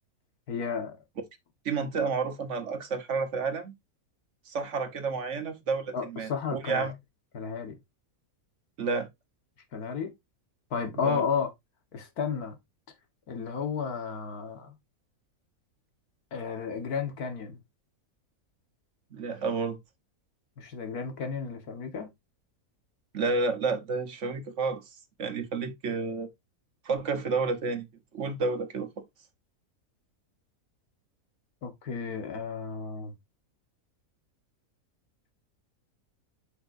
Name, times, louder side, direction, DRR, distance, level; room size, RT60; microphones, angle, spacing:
voice 1, 0.5-1.0 5.9-6.9 7.3-7.8 9.7-10.1 10.7-11.5 11.9-12.6 13.3-14.8 16.3-17.6 20.6-22.1 31.6-33.1, left 6 dB, 85° left, 1.9 m, -33 dB
voice 2, 1.6-3.7 4.5-6.9 8.8-9.1 10.9-11.2 19.1-19.8 23.1-24.8 25.2-26.3 26.8-27.9 28.1-28.9, right 4 dB, 55° right, 1.4 m, -30 dB
8.1 x 5.9 x 2.6 m
omnidirectional pair, 1.6 m